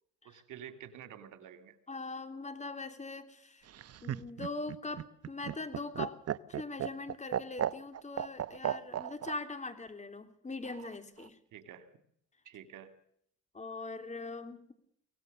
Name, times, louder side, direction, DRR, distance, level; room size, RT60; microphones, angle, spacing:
voice 1, 0.2-1.8 11.5-11.9 12.4-12.9, right 9 dB, 80° right, 9 dB, 2.7 m, -49 dB
voice 2, 1.9-3.7 4.0-6.2 6.5-11.4 13.5-14.7, left 3 dB, 25° left, 8 dB, 3.3 m, -41 dB
Laughter, 3.7-9.4 10.6-11.3, right 10 dB, 55° right, 0.9 m, -35 dB
24.5 x 18.0 x 6.7 m, 0.69 s
cardioid pair, 90°, 30 cm